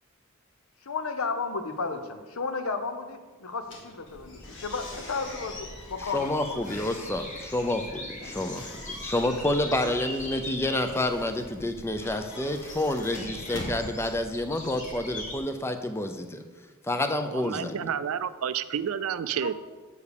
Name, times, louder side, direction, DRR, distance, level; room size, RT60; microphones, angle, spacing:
voice 1, 0.8-6.8 19.4-19.5, left 4 dB, 80° left, 8 dB, 0.8 m, -33 dB
sound 1, 3.6-14.8, left 1 dB, 60° left, 1.6 m, -44 dB
sound 2, 4.1-15.4, left 1 dB, 35° left, 1.3 m, -42 dB
voice 2, 6.1-16.4 16.8-17.9, left 1 dB, 10° left, 7 dB, 0.5 m, -29 dB
voice 3, 17.3-19.5, right 8 dB, 75° right, 15 dB, 0.4 m, -30 dB
6.6 x 5.0 x 6.8 m, 1.4 s
head